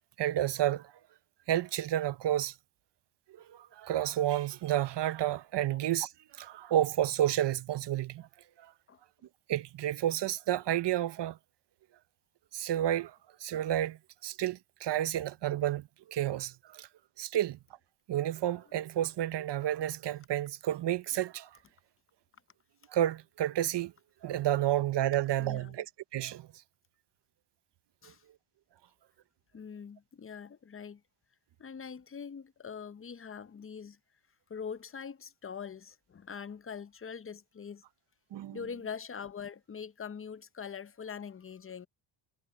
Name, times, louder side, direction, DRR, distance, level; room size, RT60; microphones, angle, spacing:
voice 1, 0.2-0.9 1.5-2.5 3.5-6.1 6.4-8.3 9.5-11.4 12.5-13.1 13.4-16.9 17.2-17.6 18.1-21.5 22.9-23.9 24.2-25.9 26.1-26.5 38.3-38.6, right 12 dB, 60° right, 0.9 m, -30 dB
voice 2, 25.4-25.7 28.0-28.2 29.5-31.0 31.6-34.0 34.5-37.8 38.5-41.9, left 6 dB, 30° left, 0.7 m, -43 dB
cardioid pair, 90°, 47 cm